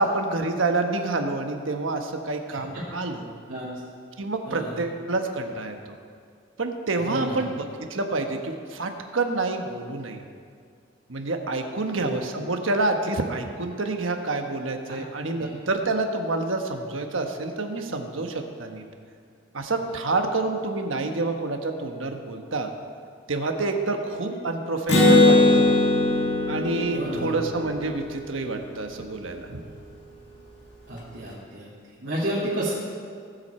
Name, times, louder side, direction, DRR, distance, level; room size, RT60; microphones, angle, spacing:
voice 1, 0.0-3.3 4.2-6.0 6.6-10.2 11.1-18.8 19.5-22.7 23.3-25.7 26.5-29.6, right 3 dB, 85° right, 4 dB, 1.2 m, -28 dB
voice 2, 3.5-3.8 4.5-4.8 7.1-7.4 12.0-12.2 14.9-15.0 15.4-15.5 24.3-24.4 26.9-27.4 30.9-31.7 32.0-32.7, right 1 dB, 60° right, -9 dB, 2.3 m, -31 dB
Acoustic guitar, 24.9-28.5, left 2 dB, 60° left, 1.9 m, -20 dB
19.5 x 7.9 x 4.4 m, 2.3 s
head